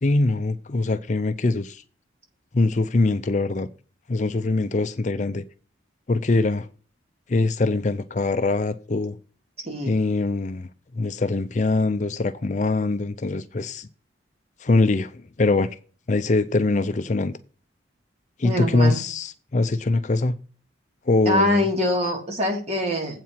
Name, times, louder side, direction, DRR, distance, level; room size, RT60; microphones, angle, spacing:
voice 1, 0.0-1.8 2.5-3.7 4.1-5.4 6.1-6.7 7.3-9.2 9.8-13.9 14.6-15.7 16.1-17.4 18.4-20.4 21.1-21.7, left 2 dB, 40° left, 0.5 m, -23 dB
voice 2, 18.4-19.0 21.3-23.2, left 1 dB, 35° right, 2.4 m, -24 dB
8.2 x 4.5 x 7.3 m
head